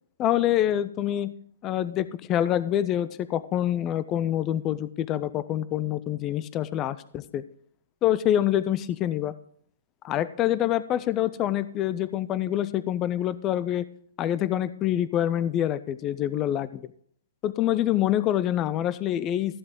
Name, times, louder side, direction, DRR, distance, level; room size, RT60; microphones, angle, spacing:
voice 1, 0.2-1.3 1.6-7.4 8.0-9.3 10.0-13.8 14.2-16.9 17.4-19.6, left 12 dB, 20° left, 16 dB, 0.5 m, -26 dB
13.5 x 7.8 x 3.7 m, 0.62 s
hypercardioid pair, 150°, 0 cm